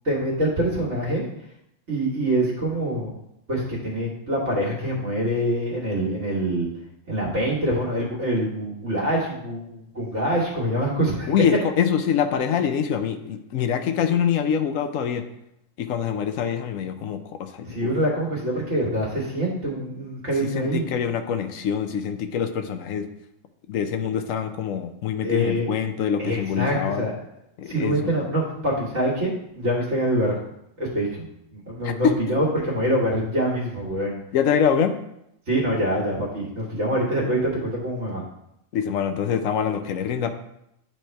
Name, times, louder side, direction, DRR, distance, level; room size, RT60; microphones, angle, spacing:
voice 1, 0.1-1.2 1.9-3.1 3.5-6.7 7.1-11.3 17.7-20.9 25.2-25.7 26.2-27.2 27.7-30.4 30.8-31.3 31.5-34.2 35.5-38.2, right 1 dB, 60° right, -5 dB, 1.8 m, -25 dB
voice 2, 11.3-15.2 15.8-17.9 20.4-23.1 23.7-27.1 27.6-28.1 31.8-32.2 34.3-35.0 38.7-40.3, left 8 dB, 85° left, 8 dB, 1.1 m, -25 dB
9.1 x 3.4 x 4.4 m, 0.80 s
omnidirectional pair, 1.3 m